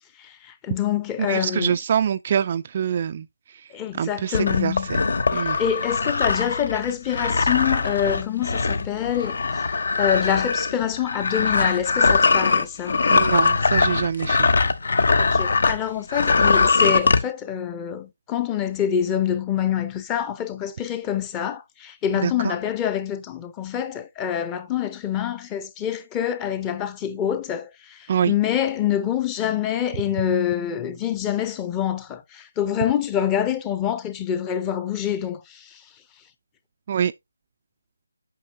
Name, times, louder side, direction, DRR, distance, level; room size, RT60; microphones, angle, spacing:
voice 1, 0.2-1.8 3.7-4.9 5.3-9.7 9.9-13.0 15.2-35.8, left 9 dB, 15° left, 0.6 m, -26 dB
voice 2, 1.2-5.0 5.3-5.6 13.1-14.5 22.2-22.5 28.1-28.4 36.9-37.1, right 8 dB, 35° right, 0.3 m, -25 dB
sound 1, 4.3-15.8 16.1-17.2, left 4 dB, 55° left, 0.8 m, -21 dB
8.5 x 5.8 x 2.6 m
figure-of-eight pair, 155°, 0 cm